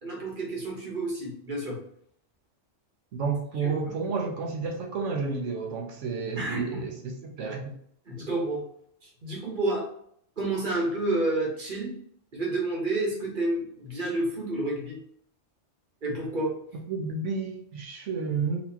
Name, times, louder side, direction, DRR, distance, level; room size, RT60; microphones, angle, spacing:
voice 1, 0.0-1.8 3.6-3.7 6.3-6.8 8.1-8.6 9.2-9.9 10.4-11.9 12.3-15.0 16.0-16.5, right 2 dB, 45° right, -2 dB, 1.3 m, -29 dB
voice 2, 3.1-7.7 16.9-18.6, right 4 dB, 85° right, 1 dB, 1.1 m, -31 dB
4.2 x 2.8 x 2.8 m, 0.67 s
omnidirectional pair, 1.2 m